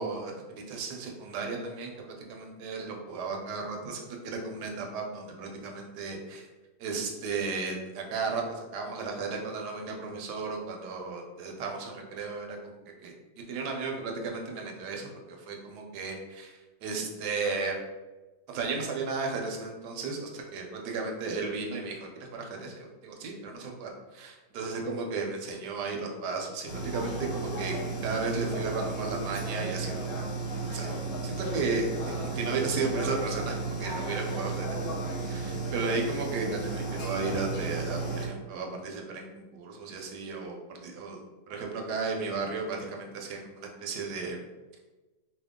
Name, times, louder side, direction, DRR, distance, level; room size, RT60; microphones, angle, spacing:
voice 1, 0.0-6.5 6.8-12.8 13.0-16.5 16.8-17.7 18.5-30.2 30.7-30.9 31.2-34.9 35.2-41.2 41.5-44.4, right 4 dB, 75° right, 1 dB, 1.1 m, -34 dB
sound 1, 26.7-38.3, right 3 dB, 65° left, 1.2 m, -34 dB
2.8 x 2.4 x 3.5 m, 1.2 s
omnidirectional pair, 1.8 m